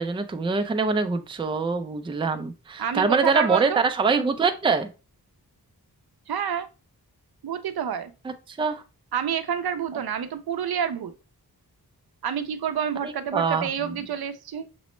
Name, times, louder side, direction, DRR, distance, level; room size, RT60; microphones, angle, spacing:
voice 1, 0.0-4.9 8.6-8.8 13.3-13.7, right 4 dB, 15° right, 8 dB, 0.3 m, -24 dB
voice 2, 2.8-3.8 6.3-6.7 7.4-8.1 9.1-11.1 12.2-14.7, right 8 dB, 75° right, 10 dB, 0.5 m, -28 dB
6.0 x 2.0 x 3.0 m, 0.32 s
wide cardioid pair, 85°, 38 cm